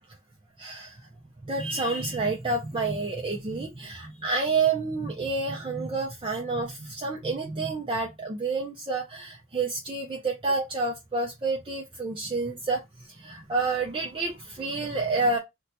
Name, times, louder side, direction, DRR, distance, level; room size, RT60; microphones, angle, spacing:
voice 1, 0.6-1.1 1.4-15.4, right 3 dB, 25° right, 0.4 m, -29 dB
2.8 x 2.2 x 3.8 m
head